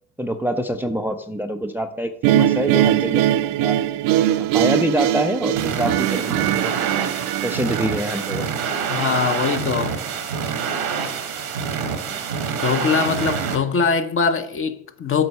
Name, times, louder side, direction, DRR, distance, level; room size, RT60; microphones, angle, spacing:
voice 1, 0.2-3.8 4.4-6.7 7.4-8.5 12.0-12.2, right 1 dB, 5° right, 0.5 m, -25 dB
sound 1, 2.2-9.3, right 12 dB, 55° right, 0.5 m, -21 dB
sound 2, 5.6-13.6, right 6 dB, 90° right, 1.1 m, -26 dB
voice 2, 8.9-9.9 12.6-15.3, left 5 dB, 30° left, 0.7 m, -22 dB
7.8 x 4.4 x 5.5 m
hypercardioid pair, 60°, 40 cm